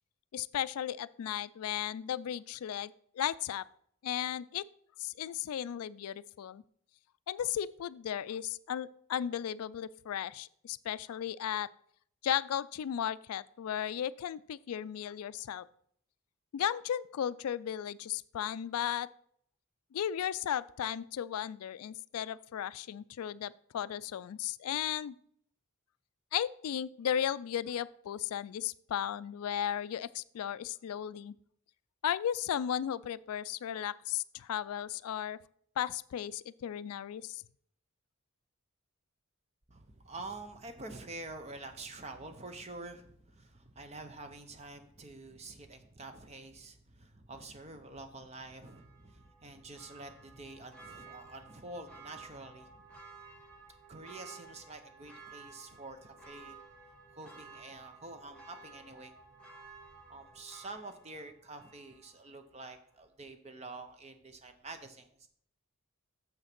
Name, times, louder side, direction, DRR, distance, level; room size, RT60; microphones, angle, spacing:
voice 1, 0.3-3.6 4.0-4.6 5.0-6.6 7.3-11.7 12.2-15.7 16.5-19.1 19.9-25.1 26.3-31.3 32.0-35.4 35.8-37.4, left 10 dB, 85° left, 18 dB, 0.3 m, -35 dB
voice 2, 39.7-53.0 53.9-56.6 57.1-59.1 60.1-65.3, right 2 dB, 30° right, 8 dB, 0.7 m, -47 dB
Church bell, 48.6-62.3 62.7-62.8, right 4 dB, 5° left, 1.5 m, -54 dB
7.2 x 6.4 x 5.9 m, 0.65 s
head